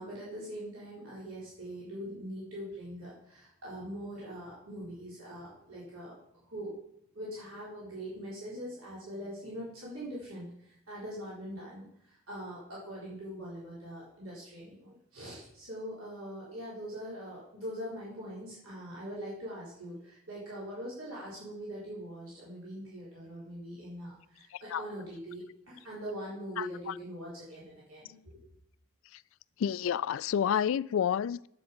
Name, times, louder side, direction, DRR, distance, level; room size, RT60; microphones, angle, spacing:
voice 1, 0.0-6.7 7.1-28.4, equal, 85° right, 4.0 m, -42 dB
voice 2, 26.6-26.9 29.6-31.5, left 8 dB, 70° left, 0.3 m, -29 dB
10.0 x 8.1 x 5.3 m
head